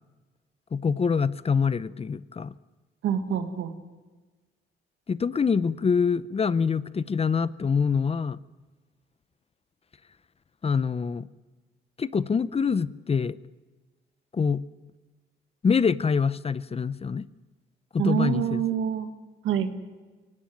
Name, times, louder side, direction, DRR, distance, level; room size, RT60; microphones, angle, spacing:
voice 1, 0.7-2.5 5.1-8.4 10.6-11.3 12.0-13.4 14.3-14.6 15.6-17.3 17.9-18.6, left 5 dB, 30° left, 17 dB, 0.7 m, -25 dB
voice 2, 3.0-3.8 18.0-19.1 19.4-19.7, right 8 dB, 85° right, 8 dB, 1.9 m, -26 dB
23.0 x 17.5 x 9.2 m, 1.3 s
cardioid pair, 90°, 20 cm